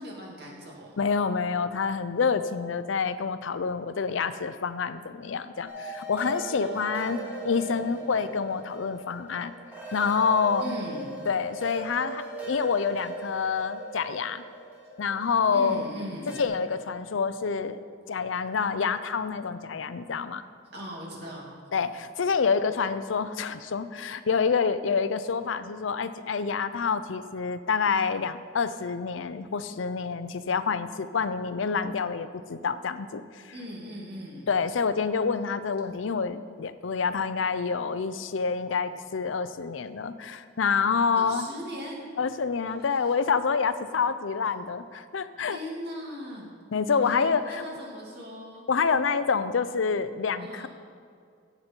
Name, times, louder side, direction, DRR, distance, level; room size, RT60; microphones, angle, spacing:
voice 1, 0.0-1.0 6.6-8.3 10.6-11.2 15.5-16.4 20.7-21.6 33.5-34.5 38.9-39.0 41.2-42.0 42.8-43.1 45.5-46.5 47.0-48.7 50.4-50.7, equal, 60° right, -2 dB, 2.5 m, -40 dB
voice 2, 1.0-7.2 7.4-9.5 9.9-10.7 11.3-14.4 15.0-15.8 16.4-17.8 18.1-20.4 21.7-33.4 34.5-41.5 42.2-45.6 46.7-47.6 48.7-50.7, left 5 dB, 85° left, 12 dB, 0.5 m, -27 dB
sound 1, 5.7-16.5, right 2 dB, 10° right, 3.2 m, -39 dB
15.5 x 8.0 x 4.5 m, 2.2 s
head